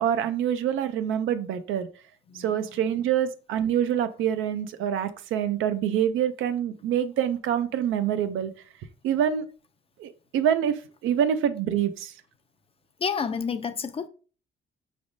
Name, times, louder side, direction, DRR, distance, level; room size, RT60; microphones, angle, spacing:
voice 1, 0.0-1.9 2.4-8.5 9.0-9.4 10.0-10.8 11.0-12.1, right 9 dB, 85° right, 0.5 m, -26 dB
voice 2, 2.3-3.0 13.0-14.1, left 6 dB, 30° left, 0.4 m, -31 dB
5.0 x 3.3 x 2.5 m
cardioid pair, 90°, 20 cm